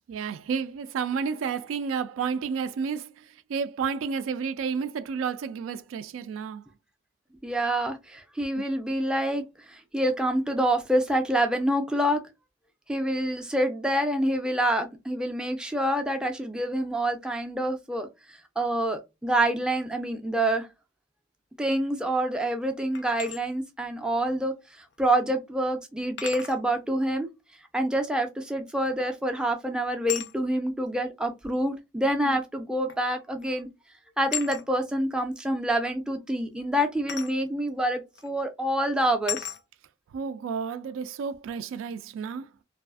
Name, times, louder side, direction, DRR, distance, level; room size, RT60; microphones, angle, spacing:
voice 1, 0.0-6.6 8.6-8.7 32.2-32.4 40.1-42.5, right 6 dB, 90° right, 0.3 m, -31 dB
voice 2, 7.4-12.2 12.9-20.7 21.6-24.5 25.0-27.3 27.7-33.7 34.2-39.4, right 1 dB, 5° right, 0.3 m, -27 dB
sound 1, 22.9-23.4 24.9-25.0 26.2-26.6 28.9-29.2 30.1-30.3 31.5-31.6 32.9-33.1 33.4-33.7 34.3-34.7 37.1-37.4 38.2-38.3 39.3-39.6, left 10 dB, 60° left, 0.4 m, -35 dB
2.4 x 2.3 x 2.3 m
head